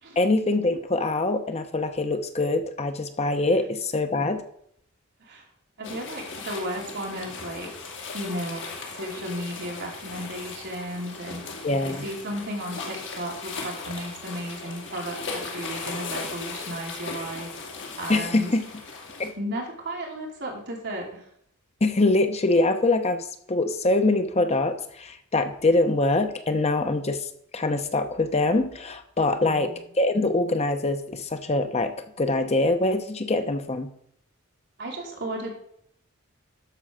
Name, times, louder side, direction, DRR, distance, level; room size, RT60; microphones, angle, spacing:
voice 1, 0.2-4.4 11.6-12.1 18.1-18.6 19.2-19.3 21.8-33.9, left 2 dB, 30° left, 8 dB, 0.8 m, -24 dB
sound 1, 5.8-19.3, left 4 dB, 60° left, 2.2 m, -37 dB
voice 2, 5.8-7.7 8.1-8.6 8.9-17.5 18.0-18.5 19.4-21.3 29.4-29.8 34.8-35.6, right 1 dB, 55° right, -1 dB, 2.8 m, -34 dB
12.5 x 4.6 x 6.3 m, 0.69 s
head